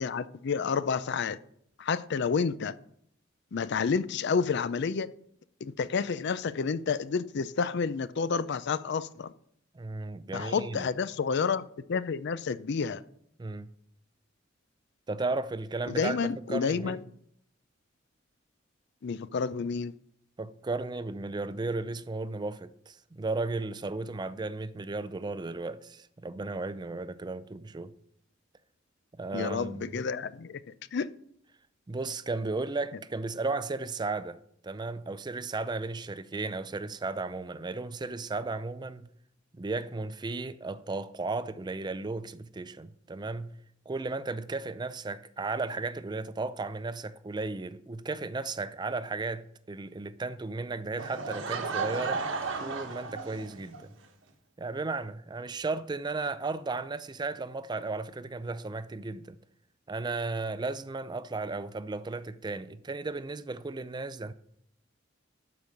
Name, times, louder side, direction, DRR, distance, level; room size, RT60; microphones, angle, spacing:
voice 1, 0.0-1.4 1.8-2.7 3.5-5.1 5.6-9.3 10.3-11.6 11.9-13.0 15.9-17.0 19.0-19.9 29.3-30.6 30.9-31.1, left 5 dB, 60° left, 0.4 m, -30 dB
voice 2, 9.7-10.9 13.4-13.7 15.1-17.0 20.4-27.9 29.2-30.0 31.9-39.1 39.5-43.6 43.9-52.2 52.6-53.9 54.6-59.4 59.9-64.3, right 3 dB, 20° right, 0.4 m, -35 dB
Laughter / Crowd, 51.0-53.8, right 4 dB, 75° right, 1.3 m, -34 dB
11.5 x 5.3 x 6.5 m
head